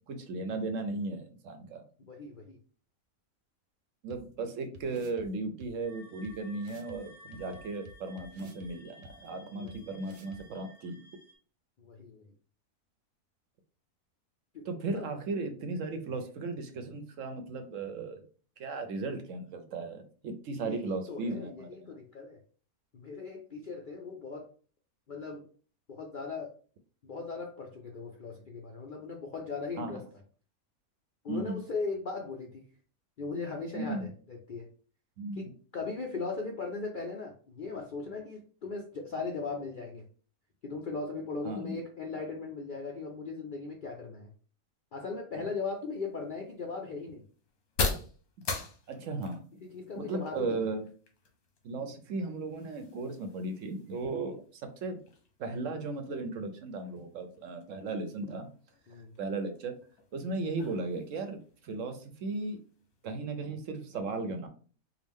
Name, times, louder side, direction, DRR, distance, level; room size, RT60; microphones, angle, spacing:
voice 1, 0.1-1.8 4.0-11.0 14.6-18.2 18.6-21.9 29.8-30.0 31.3-31.6 33.7-34.1 35.2-35.5 41.4-41.8 48.9-49.4 49.9-50.9 51.6-55.0 55.4-58.5 59.2-59.7 60.1-62.6 63.0-64.5, right 3 dB, 65° right, 6 dB, 0.9 m, -36 dB
voice 2, 2.1-2.6 9.6-9.8 11.8-12.2 14.5-14.7 14.9-15.1 20.6-22.4 22.9-24.5 25.1-25.4 25.9-26.5 27.0-30.0 31.2-32.6 33.2-34.7 35.4-35.5 35.7-40.0 40.6-44.3 44.9-47.2 49.7-50.7 58.9-59.1, left 4 dB, 60° left, 1 dB, 0.5 m, -38 dB
sound 1, 4.1-4.2 4.7-5.3 5.6-5.7 6.2-6.3 6.6-7.0 7.3-8.7 9.0-9.1 9.7-9.8 10.0-10.4, equal, 90° right, 1.2 m, -51 dB
sound 2, 5.8-11.3, left 1 dB, 15° left, 1.2 m, -56 dB
sound 3, 45.6-63.2, left 3 dB, 75° left, 1.4 m, -43 dB
4.7 x 2.2 x 3.5 m, 0.41 s
omnidirectional pair, 1.6 m